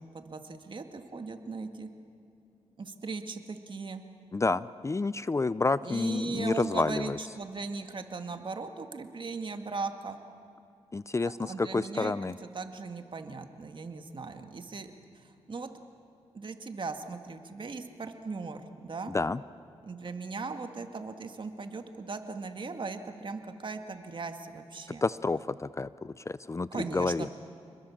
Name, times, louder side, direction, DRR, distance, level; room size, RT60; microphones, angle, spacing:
voice 1, 0.0-1.9 2.8-4.0 5.8-10.2 11.4-12.1 12.5-15.7 16.3-19.1 19.8-25.0 26.7-27.3, right 4 dB, 50° right, 6 dB, 2.1 m, -38 dB
voice 2, 4.3-7.2 10.9-12.3 19.1-19.4 25.0-27.3, left 3 dB, 25° left, 17 dB, 0.5 m, -29 dB
29.0 x 21.0 x 7.3 m, 2.8 s
cardioid pair, 70°, 11 cm